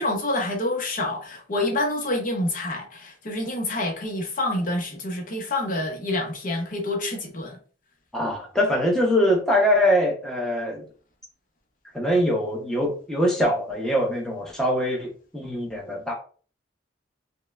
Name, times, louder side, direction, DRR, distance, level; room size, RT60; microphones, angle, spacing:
voice 1, 0.0-7.6, left 1 dB, 45° left, 0.8 m, -27 dB
voice 2, 8.1-10.8 11.9-16.1, equal, 5° left, 0.8 m, -23 dB
5.3 x 2.1 x 2.3 m
head